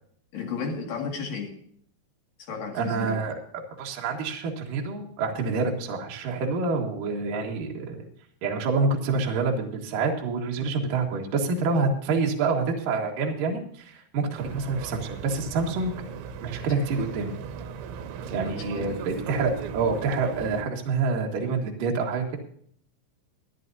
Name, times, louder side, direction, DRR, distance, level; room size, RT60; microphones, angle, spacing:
voice 1, 0.3-1.6 2.5-3.2 18.5-19.0, left 5 dB, 55° left, 2 dB, 3.3 m, -33 dB
voice 2, 2.7-8.0 8.4-15.9 16.4-17.3 18.3-22.4, right 4 dB, 55° right, 0 dB, 2.8 m, -27 dB
sound 1, 14.3-20.6, right 7 dB, 80° right, 3.4 m, -37 dB
22.5 x 11.0 x 2.7 m, 0.62 s
omnidirectional pair, 5.4 m